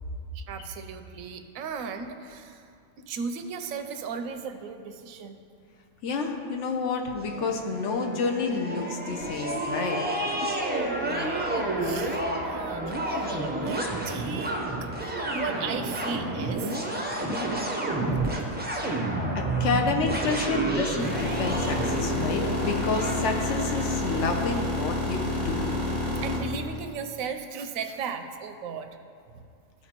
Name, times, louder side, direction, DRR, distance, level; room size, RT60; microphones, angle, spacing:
voice 1, 0.3-2.7 3.0-5.4 11.0-16.8 26.1-28.9 29.3-29.4, right 5 dB, 85° right, 7 dB, 1.0 m, -36 dB
voice 2, 6.0-10.0 17.1-17.5 19.6-25.8, left 4 dB, 65° left, 2 dB, 1.0 m, -29 dB
sound 1, 7.2-24.3, right 2 dB, 15° right, 0.4 m, -30 dB
sound 2, 21.0-26.4, left 2 dB, 40° left, 1.5 m, -29 dB
13.5 x 4.6 x 2.9 m, 2.4 s
omnidirectional pair, 1.4 m